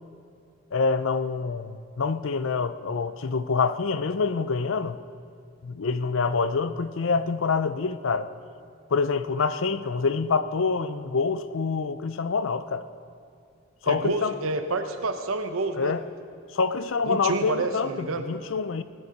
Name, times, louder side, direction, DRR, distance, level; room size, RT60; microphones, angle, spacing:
voice 1, 0.7-5.0 5.6-8.3 8.9-12.8 13.8-14.3 15.8-16.0 16.5-18.8, left 4 dB, 75° left, 13 dB, 0.5 m, -26 dB
voice 2, 13.9-16.0 17.1-18.3, right 3 dB, 90° right, 7 dB, 0.8 m, -28 dB
19.0 x 10.0 x 5.2 m, 2.4 s
head